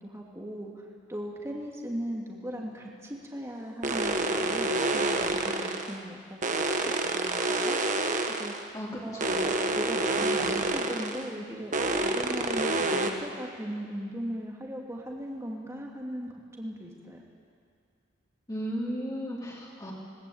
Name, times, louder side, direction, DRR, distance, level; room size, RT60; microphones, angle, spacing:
voice 1, 0.0-6.5 6.8-7.8 8.4-8.7 9.0-17.2, equal, 15° right, -2 dB, 2.6 m, -38 dB
sound 1, 3.8-6.0 6.4-8.6 9.2-11.3 11.7-13.1, right 2 dB, 40° right, 1.4 m, -28 dB
voice 2, 18.5-19.9, equal, 20° left, -5 dB, 3.4 m, -35 dB
21.0 x 19.0 x 8.7 m, 2.1 s
head